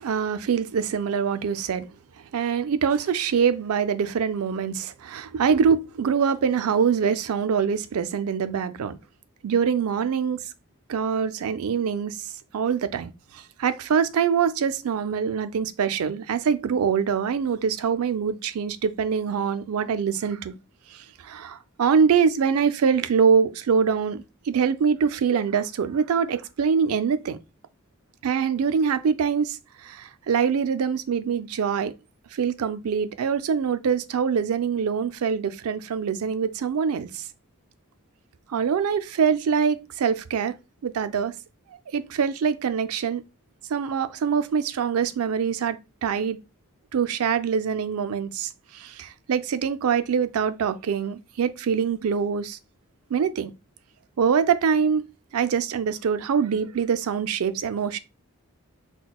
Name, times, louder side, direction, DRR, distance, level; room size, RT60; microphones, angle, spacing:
voice 1, 0.0-1.9 2.3-9.0 9.4-10.4 10.9-12.3 12.5-20.5 20.9-27.4 28.2-31.9 32.3-37.2 38.5-40.5 40.8-41.3 41.9-43.2 43.7-46.4 46.9-52.6 53.1-53.5 54.2-55.1 55.3-58.0, right 6 dB, 85° right, 0.4 m, -24 dB
5.8 x 2.2 x 2.2 m
head